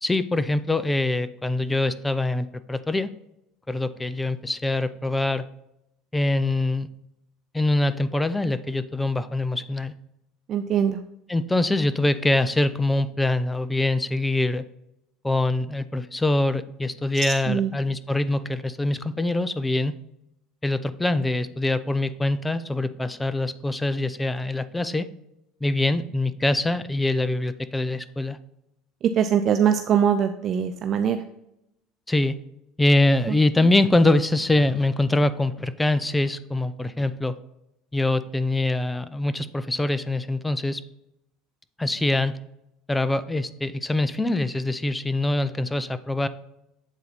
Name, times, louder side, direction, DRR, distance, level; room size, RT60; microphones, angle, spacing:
voice 1, 0.0-3.1 3.7-5.4 6.1-6.9 7.5-9.9 11.3-14.6 15.2-19.9 20.6-25.1 25.6-28.4 32.1-32.4 32.8-37.4 37.9-40.8 41.8-42.4 42.9-46.3, left 2 dB, 10° left, 13 dB, 0.5 m, -24 dB
voice 2, 10.5-11.0 17.5-17.7 29.2-31.2, right 8 dB, 45° right, 8 dB, 0.4 m, -22 dB
8.0 x 4.2 x 4.1 m, 0.84 s
supercardioid pair, 105°, 0 cm